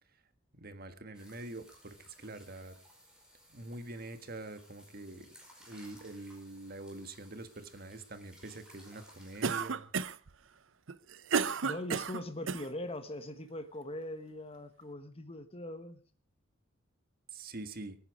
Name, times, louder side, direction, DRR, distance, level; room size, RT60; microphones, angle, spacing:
voice 1, 0.6-2.7 3.5-5.3 5.7-9.9 17.3-18.0, right 2 dB, 50° right, 10 dB, 1.6 m, -45 dB
sound 1, 1.1-9.7, equal, 5° right, 5.1 m, -59 dB
Cough, 9.4-10.3 10.9-12.7, right 5 dB, 70° right, 0.7 m, -32 dB
voice 2, 11.6-16.0, left 1 dB, 30° left, 10 dB, 1.4 m, -41 dB
23.5 x 10.0 x 4.9 m, 0.37 s
head